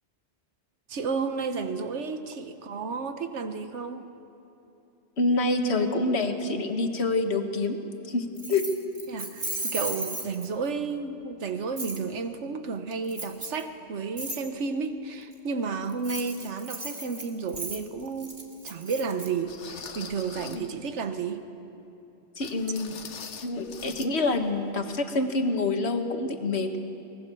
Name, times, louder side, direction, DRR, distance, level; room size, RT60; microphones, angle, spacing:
voice 1, 0.9-4.0 9.1-18.4 18.6-21.4, right 5 dB, 80° right, 8 dB, 1.4 m, -32 dB
voice 2, 5.2-7.8 8.1-8.6 20.4-20.6 22.4-22.9 23.4-26.8, left 2 dB, 65° left, 5 dB, 1.7 m, -27 dB
Keys jangling, 8.4-10.7 11.8-12.0 13.1-13.6 14.2-14.4 15.9-19.3, right 2 dB, 40° right, 2.5 m, -35 dB
sound 1, 17.5-17.7 18.3-18.4 19.5-20.7 22.4-24.1 24.4-24.6 25.0-25.1, left 6 dB, 90° left, 1.4 m, -43 dB
24.5 x 19.5 x 7.0 m, 3.0 s
omnidirectional pair, 1.2 m